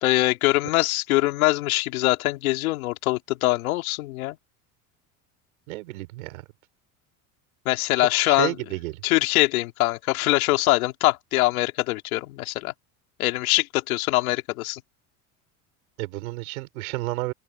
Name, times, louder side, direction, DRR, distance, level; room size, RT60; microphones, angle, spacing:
voice 1, 0.0-4.4 7.6-8.5 9.0-12.7 13.2-14.8, left 19 dB, 85° left, 2.9 m, -23 dB
voice 2, 5.7-6.4 8.0-9.0 16.0-17.3, right 20 dB, 85° right, 5.6 m, -31 dB
open air
supercardioid pair, 90°, 41 cm